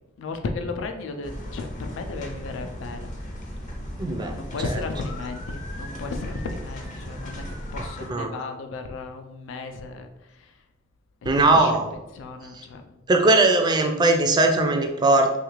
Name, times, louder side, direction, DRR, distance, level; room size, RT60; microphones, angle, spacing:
voice 1, 0.2-3.1 3.9-7.4 7.7-10.1 10.4-10.5 11.4-11.7 12.1-12.8, left 3 dB, 70° left, 6 dB, 0.3 m, -34 dB
sound 1, 1.2-8.1, equal, 40° left, 0.7 m, -36 dB
voice 2, 4.0-4.3 4.7-4.8 8.1-8.3 11.3-11.9 12.5-12.6 13.1-15.4, right 2 dB, 20° right, 4 dB, 0.3 m, -19 dB
3.1 x 2.4 x 3.0 m, 0.96 s
head